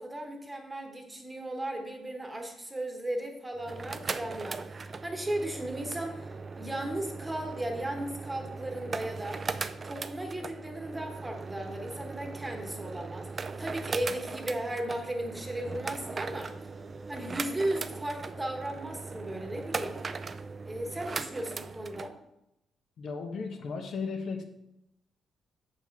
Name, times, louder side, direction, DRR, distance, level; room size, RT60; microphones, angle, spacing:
voice 1, 0.0-9.4 9.8-16.6 17.1-20.0 20.6-22.1, right 1 dB, 10° right, 3 dB, 1.2 m, -36 dB
sound 1, 3.6-22.1, right 4 dB, 30° right, 0.4 m, -39 dB
voice 2, 23.0-24.4, left 4 dB, 65° left, 4 dB, 1.2 m, -35 dB
7.2 x 5.6 x 5.9 m, 0.85 s
cardioid pair, 140°, 0 cm